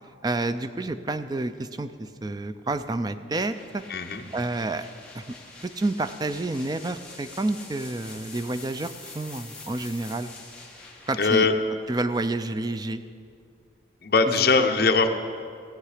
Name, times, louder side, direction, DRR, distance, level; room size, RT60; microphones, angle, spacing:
voice 1, 0.2-3.8 4.3-4.9 5.1-5.3 5.6-10.3 11.1-11.5 11.9-13.0 14.4-14.7, right 2 dB, 20° right, 11 dB, 0.4 m, -29 dB
sound 1, 3.5-13.2, left 3 dB, 5° left, 1.4 m, -46 dB
voice 2, 3.9-4.2 11.2-11.5 14.0-15.1, left 4 dB, 50° left, 5 dB, 0.8 m, -21 dB
17.5 x 7.8 x 4.9 m, 2.3 s
head